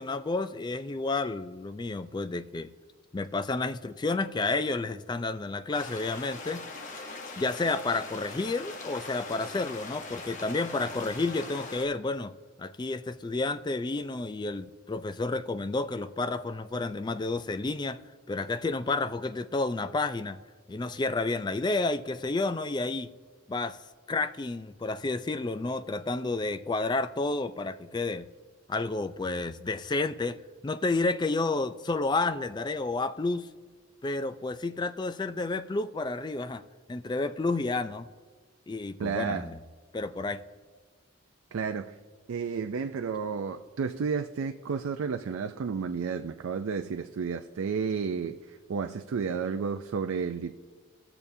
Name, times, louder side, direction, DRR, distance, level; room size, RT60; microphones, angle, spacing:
voice 1, 0.0-2.7 3.1-6.7 7.4-12.3 12.6-18.0 18.3-20.4 20.7-23.1 23.5-23.8 24.1-28.3 28.7-30.4 30.6-33.5 34.0-36.6 36.9-38.1 38.7-39.6 39.9-40.4, left 3 dB, 20° left, 11 dB, 0.3 m, -30 dB
sound 1, 5.7-11.8, left 3 dB, 40° left, 1.0 m, -41 dB
voice 2, 39.0-39.5 41.5-42.0 42.3-50.5, right 5 dB, 85° right, 8 dB, 0.4 m, -32 dB
20.0 x 6.9 x 2.7 m, 1.5 s
head